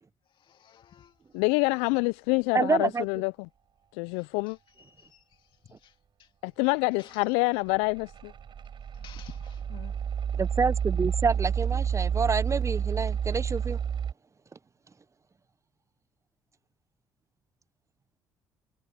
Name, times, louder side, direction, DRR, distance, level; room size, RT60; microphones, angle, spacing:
voice 1, 0.3-1.1 4.1-6.3 7.0-7.2 8.9-9.9, left 9 dB, 55° left, 2.7 m, -53 dB
voice 2, 1.3-3.3 3.9-4.6 6.4-8.3, left 30 dB, 75° left, 0.6 m, -26 dB
voice 3, 2.5-3.1 10.3-13.8, right 4 dB, 30° right, 1.1 m, -27 dB
sound 1, 7.7-14.1, right 8 dB, 50° right, 7.0 m, -30 dB
hypercardioid pair, 50°, 11 cm